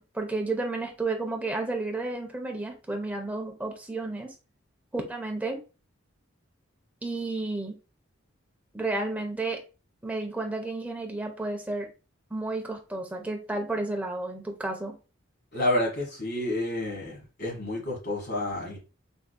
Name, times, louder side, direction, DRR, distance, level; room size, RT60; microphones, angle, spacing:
voice 1, 0.0-4.3 4.9-5.6 7.0-7.8 8.7-9.6 10.0-11.9 12.3-15.0, right 2 dB, 5° right, 0.5 m, -32 dB
voice 2, 15.5-18.8, left 1 dB, 50° left, 1.3 m, -29 dB
3.5 x 2.5 x 2.2 m
head